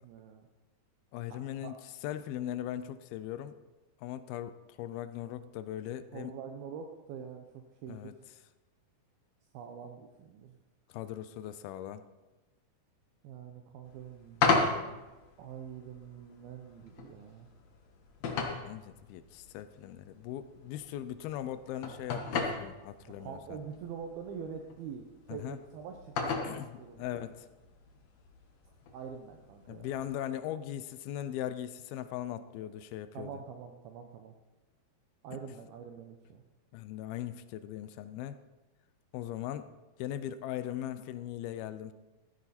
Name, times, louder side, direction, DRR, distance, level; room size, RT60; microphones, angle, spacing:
voice 1, 0.0-0.5 1.3-1.8 6.1-8.2 9.5-10.6 13.2-15.1 15.4-17.5 23.1-27.3 28.9-29.9 33.1-34.3 35.2-36.4, right 7 dB, 75° right, 4 dB, 2.6 m, -45 dB
voice 2, 1.1-1.8 2.0-3.6 4.0-6.4 7.9-8.1 10.9-12.0 18.6-23.6 25.3-25.6 26.4-27.5 29.7-33.3 36.7-38.4 39.1-39.7 40.0-41.9, left 11 dB, 80° left, 12 dB, 2.3 m, -39 dB
sound 1, 13.8-30.2, left 4 dB, 55° left, 2.0 m, -37 dB
15.0 x 14.0 x 4.3 m, 1.1 s
omnidirectional pair, 4.8 m